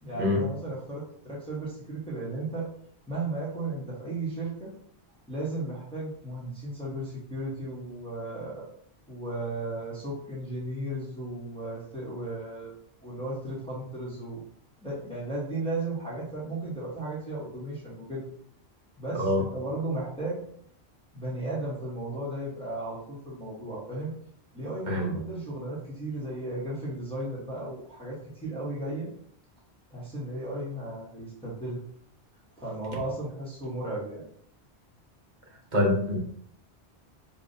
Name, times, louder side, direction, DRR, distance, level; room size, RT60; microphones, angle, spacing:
voice 1, 0.0-2.7 3.1-4.7 5.3-8.6 9.1-12.7 13.0-14.4 14.8-18.2 19.0-20.4 21.1-24.1 24.5-29.1 29.9-31.8 32.6-34.2, right 2 dB, 5° left, -7 dB, 1.0 m, -35 dB
voice 2, 35.7-36.2, left 1 dB, 45° right, -1 dB, 1.0 m, -25 dB
5.3 x 2.3 x 2.6 m, 0.64 s
omnidirectional pair, 1.1 m